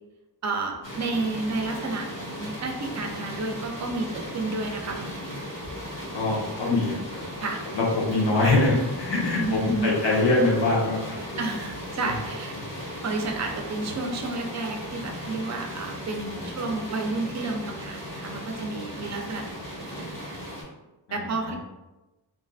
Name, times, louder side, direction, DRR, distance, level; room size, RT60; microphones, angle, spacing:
voice 1, 0.4-5.4 7.4-7.6 9.4-9.9 11.4-12.6 13.0-19.7 20.0-20.4 21.1-21.5, right 3 dB, 40° right, 3 dB, 0.4 m, -31 dB
sound 1, 0.8-20.6, equal, 50° left, 1.1 m, -37 dB
voice 2, 6.1-7.0 7.7-11.4 21.1-21.2 21.5-21.6, left 2 dB, 90° left, -4 dB, 0.8 m, -23 dB
2.5 x 2.4 x 2.3 m, 1.0 s
wide cardioid pair, 110°, 42 cm